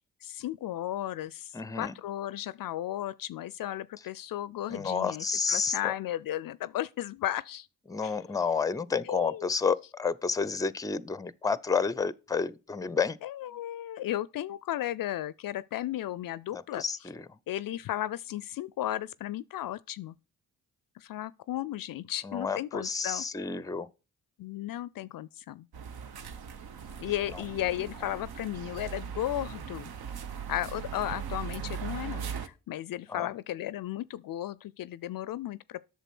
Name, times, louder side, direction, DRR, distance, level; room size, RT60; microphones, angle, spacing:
voice 1, 0.2-7.7 8.0-8.2 8.6-8.7 9.0-9.5 13.2-16.8 17.5-20.1 21.0-23.2 24.4-25.7 27.0-29.9 30.5-35.8, left 13 dB, 55° left, 0.5 m, -35 dB
voice 2, 1.5-2.0 4.7-5.9 7.9-13.2 16.5-17.3 22.2-23.9 27.3-27.4 33.1-33.3, left 5 dB, 10° left, 0.5 m, -30 dB
sound 1, 25.7-32.5, right 7 dB, 60° right, 1.0 m, -39 dB
8.0 x 6.5 x 6.0 m
hypercardioid pair, 45°, 42 cm